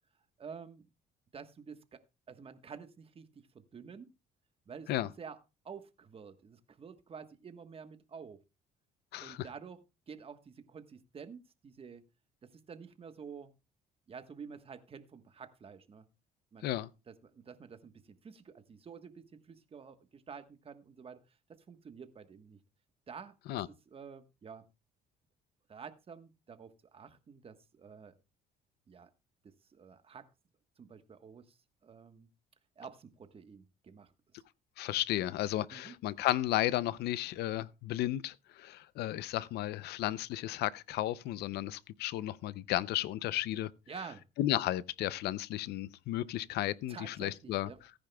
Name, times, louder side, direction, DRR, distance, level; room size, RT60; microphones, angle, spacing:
voice 1, 0.4-0.9 1.3-2.0 2.3-4.1 4.6-4.9 5.2-5.4 5.6-8.4 9.2-12.0 12.4-13.5 14.1-16.0 16.5-16.7 17.1-22.6 23.1-23.6 23.9-24.6 25.7-28.2 28.9-29.1 29.7-30.2 30.8-32.3 32.8-34.1 35.7-35.9 43.9-44.2 46.9-47.8, right 6 dB, 35° right, 1.3 m, -49 dB
voice 2, 9.1-9.4 16.6-16.9 23.5-23.7 34.8-43.7 44.4-47.7, left 14 dB, 75° left, 0.5 m, -33 dB
18.0 x 10.0 x 2.3 m
cardioid pair, 110°, 17 cm